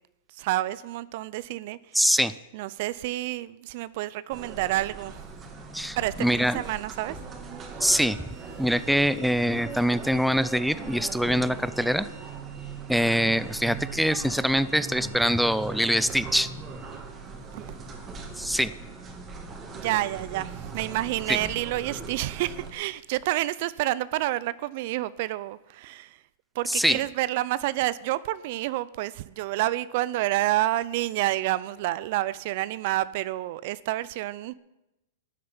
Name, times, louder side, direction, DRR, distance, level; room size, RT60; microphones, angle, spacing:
voice 1, 0.4-1.8 2.5-5.2 5.9-7.2 17.5-17.7 19.8-26.2 26.6-34.5, right 16 dB, 55° right, 0.5 m, -29 dB
voice 2, 1.9-2.3 5.7-6.6 7.8-8.2 8.6-12.1 12.9-16.5 18.4-18.7 21.3-21.4 26.7-27.0, equal, ahead, 0.5 m, -24 dB
sound 1, 4.3-22.7, right 4 dB, 25° right, 2.4 m, -40 dB
12.5 x 7.6 x 9.7 m
hypercardioid pair, 125°, 0 cm